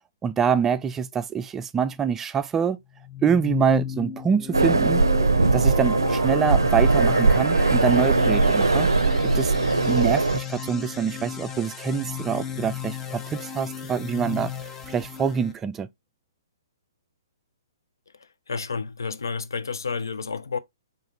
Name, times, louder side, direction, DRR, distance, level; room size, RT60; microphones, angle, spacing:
voice 1, 0.2-2.8 3.2-5.0 5.5-8.9 9.2-14.5 14.9-15.9, right 7 dB, 15° right, 0.3 m, -25 dB
sound 1, 3.0-15.5, left 8 dB, 15° left, 0.7 m, -34 dB
sound 2, 4.5-10.4, right 3 dB, 80° right, 0.5 m, -20 dB
voice 2, 18.5-20.6, left 5 dB, 70° left, 0.6 m, -30 dB
4.8 x 2.5 x 3.9 m
figure-of-eight pair, 120°, 2 cm